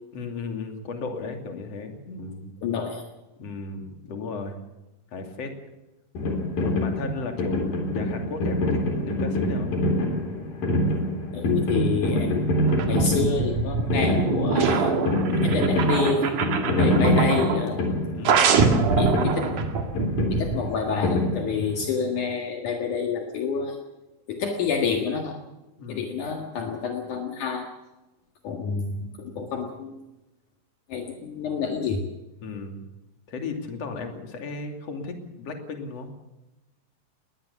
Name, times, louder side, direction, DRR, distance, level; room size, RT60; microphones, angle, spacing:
voice 1, 0.1-2.5 3.4-4.6 5.1-5.5 6.6-9.7 16.6-16.9 18.1-18.7 25.8-26.1 32.4-32.9 33.3-36.1, left 4 dB, 50° left, 4 dB, 3.6 m, -35 dB
voice 2, 2.6-3.0 11.3-14.9 15.4-16.3 16.7-17.8 19.0-19.6 20.3-23.8 24.3-25.4 25.9-27.7 28.4-30.0 30.9-32.0, left 5 dB, 65° left, 3 dB, 3.2 m, -28 dB
sound 1, 6.2-21.9, left 1 dB, 80° left, 5.6 m, -25 dB
sound 2, 12.7-17.7 18.3-20.6, right 5 dB, 65° right, 3.5 m, -24 dB
20.5 x 19.5 x 7.2 m, 0.99 s
omnidirectional pair, 3.9 m